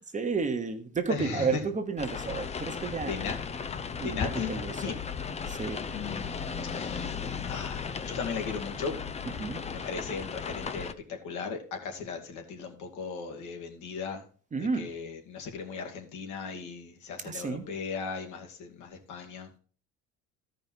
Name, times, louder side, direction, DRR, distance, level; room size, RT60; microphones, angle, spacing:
voice 1, 0.1-3.1 4.0-4.8 5.5-5.8 9.4-9.6 14.5-14.9 17.3-17.7, right 4 dB, 25° right, 6 dB, 1.1 m, -31 dB
voice 2, 1.1-1.6 3.0-3.4 4.0-5.0 5.5-5.7 5.9-6.3 6.6-9.0 9.7-14.3 14.6-19.6, left 5 dB, 65° left, 4 dB, 2.0 m, -37 dB
sound 1, 2.0-10.9, left 6 dB, 20° left, 0.6 m, -36 dB
13.0 x 5.3 x 4.5 m, 0.41 s
supercardioid pair, 100°, 33 cm